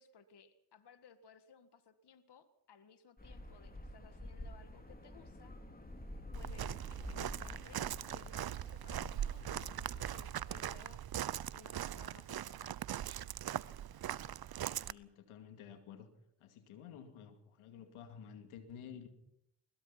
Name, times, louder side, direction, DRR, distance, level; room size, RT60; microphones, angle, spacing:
voice 1, 0.0-5.6 6.3-9.7 10.1-11.0 11.5-13.0, left 5 dB, 55° left, 11 dB, 1.8 m, -61 dB
sound 1, 3.2-10.8, left 1 dB, 20° left, 3.4 m, -49 dB
Walk footsteps, 6.3-14.9, right 11 dB, 50° right, 0.8 m, -41 dB
voice 2, 14.8-16.1 16.4-19.1, left 8 dB, 85° left, 7 dB, 2.4 m, -52 dB
21.5 x 21.0 x 5.8 m, 0.78 s
supercardioid pair, 50°, 49 cm